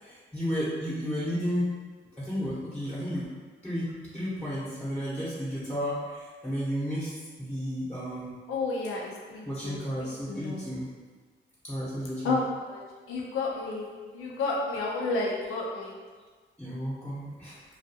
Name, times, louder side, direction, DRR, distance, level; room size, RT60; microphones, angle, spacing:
voice 1, 0.0-1.7 2.2-3.3 3.6-7.1 7.4-8.3 9.4-10.9 11.6-12.4 16.6-17.6, equal, 5° left, -8 dB, 0.7 m, -32 dB
voice 2, 8.5-10.6 12.2-13.9 14.1-16.0, left 3 dB, 90° left, -2 dB, 0.5 m, -31 dB
2.3 x 2.3 x 2.6 m, 1.5 s
cardioid pair, 75°, 21 cm